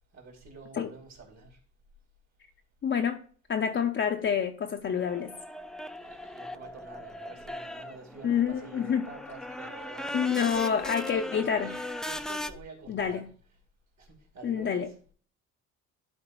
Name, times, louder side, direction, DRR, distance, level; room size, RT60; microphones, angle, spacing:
voice 1, 0.1-1.6 6.0-13.2 14.0-14.8, right 4 dB, 60° right, 2.8 m, -47 dB
voice 2, 2.8-3.2 3.5-5.3 8.2-9.1 10.1-11.7 12.9-13.3 14.4-14.9, left 7 dB, 40° left, 0.6 m, -28 dB
sound 1, 4.9-12.5, left 1 dB, ahead, 0.4 m, -39 dB
11.5 x 4.2 x 3.0 m
cardioid pair, 90°, 30 cm